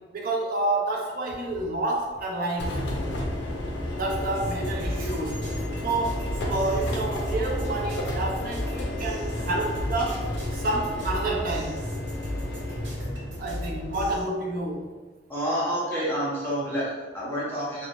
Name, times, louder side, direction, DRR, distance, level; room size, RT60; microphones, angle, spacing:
voice 1, 0.1-2.8 3.9-5.4 5.8-10.3 10.5-11.8 13.4-14.9, right 2 dB, 50° right, -3 dB, 0.5 m, -29 dB
sound 1, 2.6-14.2, left 1 dB, 75° left, 0.5 m, -32 dB
sound 2, 4.3-14.2, left 1 dB, 90° right, 0.9 m, -36 dB
voice 2, 15.3-17.9, equal, 10° left, -8 dB, 0.7 m, -28 dB
2.8 x 2.0 x 2.5 m, 1.4 s
head